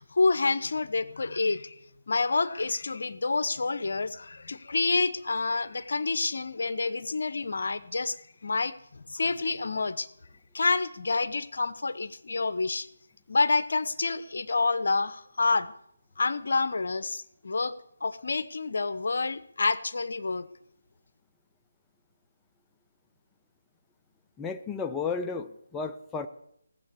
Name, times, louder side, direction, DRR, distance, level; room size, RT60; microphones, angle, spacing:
voice 1, 0.0-1.8 2.1-8.2 8.4-10.1 10.5-12.9 13.3-15.7 16.2-17.7 18.0-20.5, left 3 dB, 65° left, 15 dB, 1.0 m, -28 dB
voice 2, 24.4-26.3, left 5 dB, 10° left, 5 dB, 0.6 m, -33 dB
17.0 x 7.7 x 8.3 m, 0.75 s
figure-of-eight pair, 155°, 0 cm